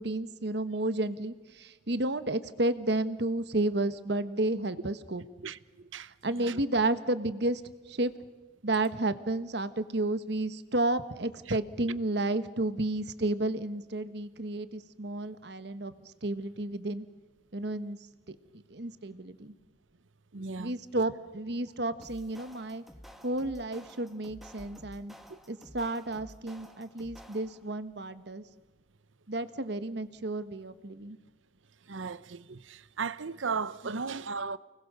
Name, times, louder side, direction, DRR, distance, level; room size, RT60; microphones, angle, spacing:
voice 1, 0.0-5.2 6.2-8.1 8.6-17.0 17.5-18.0 18.3-19.5 20.6-22.8 23.2-25.1 25.5-28.4 29.3-31.2 33.8-33.9, right 2 dB, 60° right, 1.3 m, -32 dB
voice 2, 20.3-20.7 25.3-25.4 31.9-34.6, right 5 dB, 85° right, 0.8 m, -36 dB
sound 1, 22.0-27.7, equal, ahead, 1.4 m, -52 dB
30.0 x 20.0 x 6.7 m
head